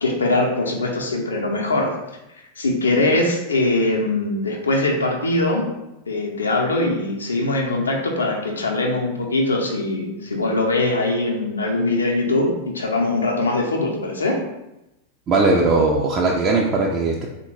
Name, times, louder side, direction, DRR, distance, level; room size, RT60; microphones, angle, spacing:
voice 1, 0.0-1.9 2.6-5.7 6.1-14.4, left 2 dB, 75° left, 1 dB, 0.5 m, -22 dB
voice 2, 15.3-17.3, right 3 dB, 30° right, -2 dB, 0.3 m, -19 dB
3.5 x 2.1 x 3.0 m, 0.92 s
figure-of-eight pair, 90°, 0 cm